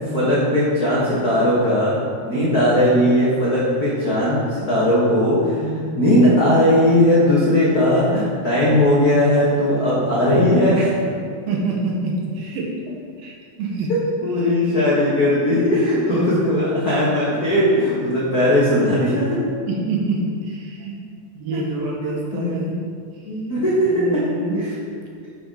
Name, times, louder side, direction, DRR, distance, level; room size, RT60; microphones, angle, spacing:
voice 1, 0.1-2.0 2.2-4.4 4.7-5.6 6.0-10.9 13.9-19.4 21.5-21.6 22.0-22.5 23.2-24.2 24.5-24.7, left 1 dB, 85° left, -8 dB, 0.8 m, -18 dB
voice 2, 2.3-2.7 5.6-5.9 11.5-12.7 13.2-13.9 14.4-14.7 16.1-16.4 19.7-21.1 21.3-22.8 23.9-24.6, right 3 dB, 75° right, -2 dB, 2.9 m, -27 dB
10.5 x 5.8 x 3.8 m, 2.1 s
omnidirectional pair, 4.3 m